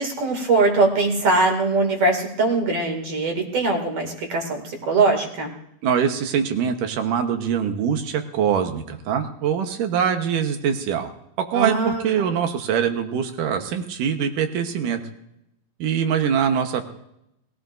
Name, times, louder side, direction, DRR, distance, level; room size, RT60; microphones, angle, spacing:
voice 1, 0.0-5.5 11.5-12.3, right 3 dB, 45° right, 2 dB, 3.2 m, -21 dB
voice 2, 5.8-11.1 11.5-15.0 15.8-16.9, right 8 dB, 70° right, 6 dB, 2.6 m, -23 dB
21.5 x 16.0 x 2.6 m, 0.81 s
omnidirectional pair, 4.1 m